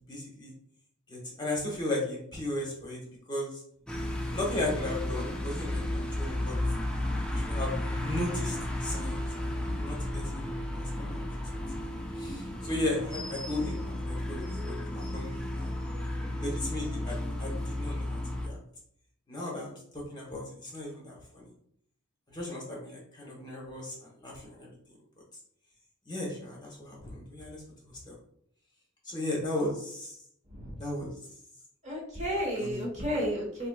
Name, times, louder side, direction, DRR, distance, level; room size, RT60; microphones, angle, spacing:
voice 1, 0.1-0.5 1.1-3.0 3.3-3.6 4.3-6.5 7.3-7.7 8.0-11.2 11.5-11.6 12.2-15.8 16.3-18.6 19.3-21.5 22.3-24.7 26.1-27.6 28.1-28.2 29.0-30.2 30.8-31.1 32.6-32.9, left 1 dB, 20° left, -3 dB, 0.8 m, -36 dB
sound 1, 3.9-18.5, left 1 dB, 5° left, 0.4 m, -33 dB
voice 2, 31.8-33.7, equal, 35° right, -2 dB, 1.0 m, -32 dB
4.1 x 2.8 x 2.2 m, 0.67 s
head